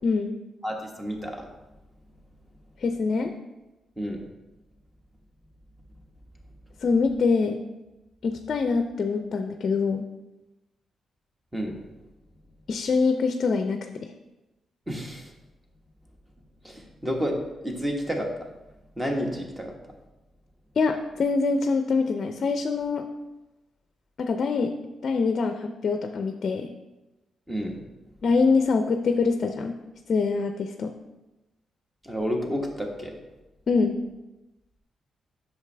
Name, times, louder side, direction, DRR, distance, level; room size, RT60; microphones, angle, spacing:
voice 1, 0.0-0.3 2.8-3.3 6.8-7.6 8.2-10.0 12.7-14.1 20.8-23.1 24.2-24.7 25.0-26.7 28.2-29.8 30.1-30.9 33.7-34.0, left 4 dB, 50° left, 7 dB, 0.5 m, -24 dB
voice 2, 0.6-1.5 4.0-4.2 11.5-11.8 14.9-15.3 16.6-18.3 19.0-19.7 27.5-27.8 32.0-33.2, equal, 10° right, 1 dB, 1.3 m, -30 dB
8.2 x 6.3 x 3.3 m, 1.0 s
cardioid pair, 100°, 0 cm